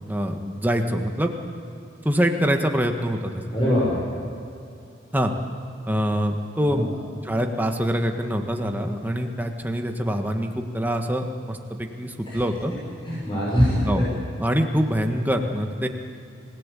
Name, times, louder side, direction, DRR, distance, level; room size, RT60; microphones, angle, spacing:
voice 1, 0.1-1.3 2.0-3.2 5.1-5.3 5.9-6.9 7.2-12.7 13.9-14.1 14.4-15.9, equal, 10° right, 4 dB, 1.6 m, -24 dB
voice 2, 3.5-4.0 6.7-6.8 12.3-12.4 13.0-14.0, equal, 25° left, -7 dB, 6.1 m, -22 dB
27.0 x 17.5 x 8.4 m, 2.6 s
head